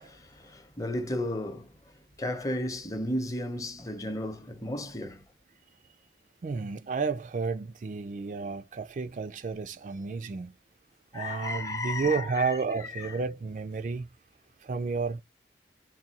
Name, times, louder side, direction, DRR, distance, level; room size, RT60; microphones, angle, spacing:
voice 1, 0.0-5.2 11.1-12.6 13.0-13.1, left 1 dB, 20° left, 0.7 m, -34 dB
voice 2, 6.4-10.5 11.1-14.1 14.6-15.2, right 4 dB, 45° right, 0.3 m, -31 dB
4.0 x 2.6 x 2.7 m
head